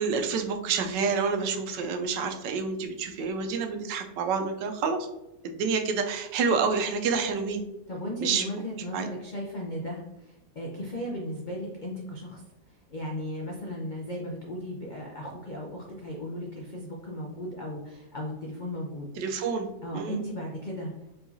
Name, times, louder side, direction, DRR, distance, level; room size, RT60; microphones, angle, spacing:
voice 1, 0.0-5.1 5.4-7.6 8.2-8.4 8.9-9.1 19.2-19.7 19.9-20.2, right 5 dB, 80° right, 6 dB, 1.3 m, -28 dB
voice 2, 7.9-12.4 12.7-19.1 19.8-21.2, equal, 80° left, -2 dB, 0.4 m, -36 dB
4.8 x 3.7 x 2.7 m, 0.91 s
omnidirectional pair, 1.9 m